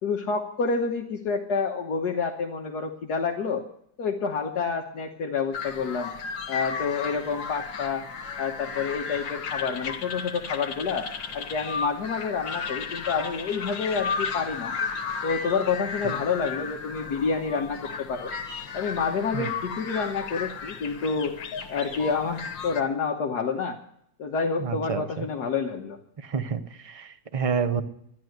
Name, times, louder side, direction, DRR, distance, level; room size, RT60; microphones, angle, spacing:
voice 1, 0.0-3.6 4.0-6.1 6.5-8.0 8.4-11.1 11.3-14.7 15.2-18.3 18.7-21.4 21.7-23.8 24.2-26.0, left 5 dB, 60° left, 2 dB, 1.6 m, -28 dB
sound 1, 5.5-22.8, left 5 dB, 80° left, 2.1 m, -34 dB
voice 2, 24.6-25.3 26.2-27.8, right 6 dB, 35° right, 9 dB, 0.5 m, -29 dB
13.0 x 10.5 x 7.9 m, 0.70 s
omnidirectional pair, 2.0 m